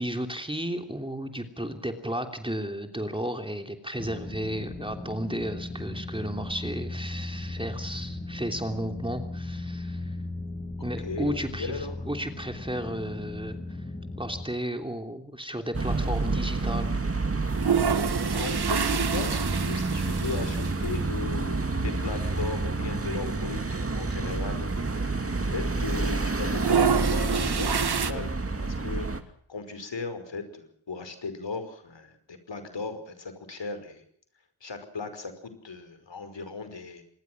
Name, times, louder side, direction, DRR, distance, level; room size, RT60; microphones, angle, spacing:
voice 1, 0.0-10.2 10.8-13.8 14.2-16.9, equal, 10° right, 5 dB, 3.1 m, -33 dB
sound 1, 4.0-14.4, left 2 dB, 20° left, 7.4 m, -37 dB
voice 2, 11.0-12.1 18.3-25.0 25.5-34.0 34.6-37.0, left 4 dB, 60° left, 9 dB, 5.4 m, -37 dB
sound 2, 15.7-29.2, right 3 dB, 25° right, 2.4 m, -29 dB
sound 3, 17.4-21.0 21.3-21.4 21.6-21.7 22.6-22.8 23.3-23.4 23.5-25.4 25.7-26.1 26.4-28.1, right 6 dB, 50° right, 1.7 m, -28 dB
26.5 x 20.5 x 6.1 m, 0.64 s
wide cardioid pair, 80°, 50 cm